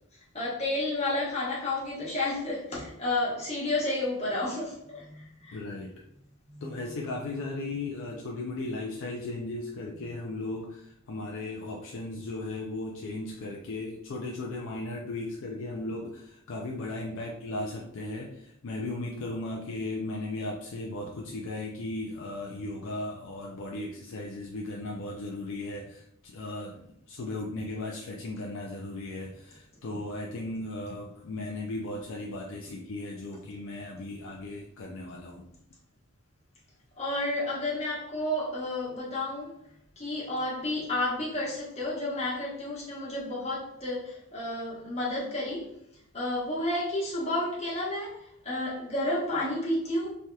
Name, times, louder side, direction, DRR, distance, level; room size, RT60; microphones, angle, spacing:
voice 1, 0.1-5.6 6.4-7.0 37.0-39.6 40.0-45.7 46.1-50.1, left 1 dB, 30° left, -7 dB, 1.1 m, -31 dB
voice 2, 5.5-5.9 6.6-35.5, left 2 dB, 60° left, -1 dB, 0.4 m, -36 dB
3.3 x 2.8 x 2.2 m, 0.74 s
head